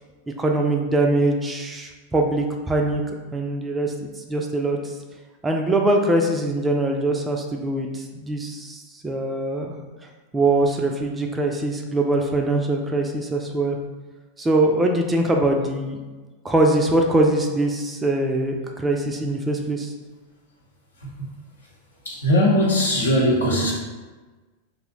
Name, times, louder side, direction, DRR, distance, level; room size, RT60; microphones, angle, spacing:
voice 1, 0.4-3.0 3.3-3.9 4.3-4.9 5.4-9.7 10.3-13.8 14.4-16.0 16.4-19.9, right 2 dB, 15° right, 2 dB, 0.3 m, -22 dB
voice 2, 21.0-21.3 22.0-23.7, equal, 75° left, -4 dB, 0.8 m, -20 dB
2.6 x 2.0 x 3.7 m, 1.3 s
figure-of-eight pair, 90°, 0 cm